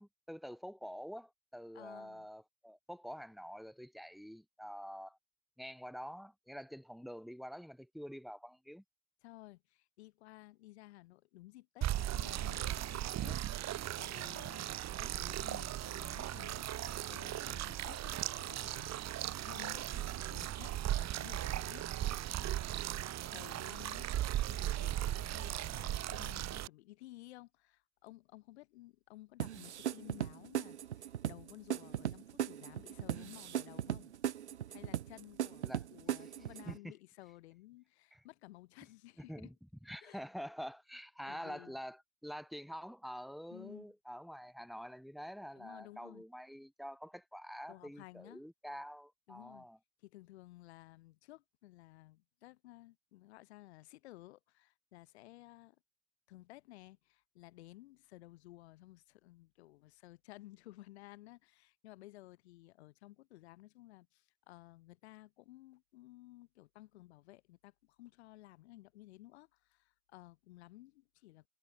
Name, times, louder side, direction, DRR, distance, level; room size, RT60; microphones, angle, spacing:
voice 1, 0.0-5.2 5.6-8.8 35.6-35.8 36.7-36.8 38.1-38.2 39.3-39.5 39.8-49.8, equal, ahead, 6.5 m, -47 dB
voice 2, 1.7-2.3 9.2-18.9 19.4-22.1 23.3-24.1 24.5-34.1 34.7-39.5 40.0-40.2 41.3-41.8 43.5-43.9 45.5-46.2 47.7-48.4 49.3-49.7 50.0-55.8 56.3-71.5, left 17 dB, 75° left, 6.3 m, -55 dB
sound 1, 11.8-26.7, right 13 dB, 50° right, 2.6 m, -37 dB
sound 2, 29.4-36.8, right 10 dB, 85° right, 0.7 m, -38 dB
figure-of-eight pair, 50°, 33 cm